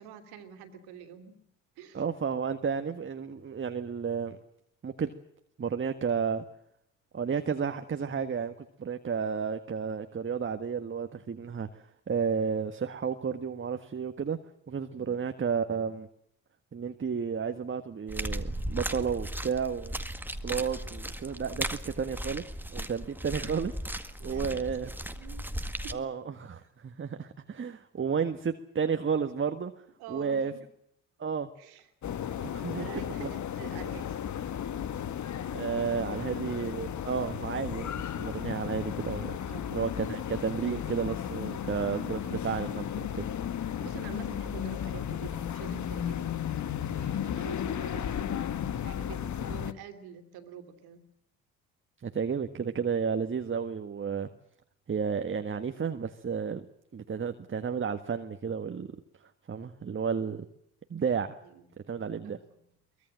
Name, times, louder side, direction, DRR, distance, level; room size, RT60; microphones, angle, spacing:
voice 1, 0.0-1.4 1.8-2.0 14.9-15.2 24.2-25.5 25.8-26.0 30.0-30.6 31.6-31.9 32.3-34.2 36.0-36.6 39.5-39.9 43.8-46.3 46.7-51.0 61.4-61.6 62.2-62.4, right 7 dB, 70° right, 8 dB, 2.9 m, -47 dB
voice 2, 1.9-4.4 4.8-5.1 5.6-6.4 7.1-14.4 14.7-16.1 16.7-19.9 20.4-24.9 25.9-29.7 30.1-30.5 31.2-31.5 32.4-33.3 35.5-39.4 39.7-43.3 52.0-54.3 54.9-56.6 56.9-58.9 59.5-60.4 60.9-61.4 61.9-62.4, right 6 dB, 30° right, 8 dB, 1.6 m, -32 dB
sound 1, 18.1-25.9, right 1 dB, 5° right, 1.9 m, -36 dB
sound 2, 32.0-49.7, left 9 dB, 45° left, 1.5 m, -34 dB
23.5 x 21.0 x 7.6 m, 0.76 s
hypercardioid pair, 50°, 40 cm